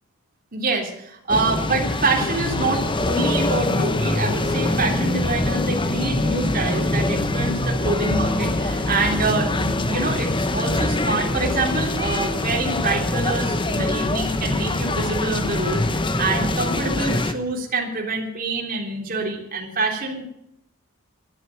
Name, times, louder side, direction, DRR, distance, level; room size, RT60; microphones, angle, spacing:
voice 1, 0.5-20.3, right 3 dB, 40° right, 0 dB, 3.5 m, -26 dB
sound 1, 1.3-17.3, left 2 dB, 25° left, 1.0 m, -24 dB
12.5 x 10.5 x 9.2 m, 0.76 s
head